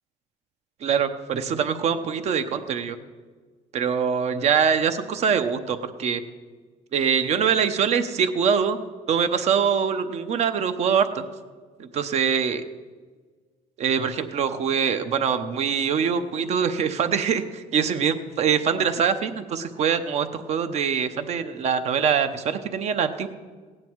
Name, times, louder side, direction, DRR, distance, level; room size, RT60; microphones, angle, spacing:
voice 1, 0.8-3.0 3.7-6.2 6.9-8.8 9.1-11.2 11.8-12.6 13.8-23.3, right 7 dB, 50° right, 9 dB, 1.0 m, -23 dB
17.0 x 9.4 x 4.7 m, 1.5 s
cardioid pair, 125°, 14 cm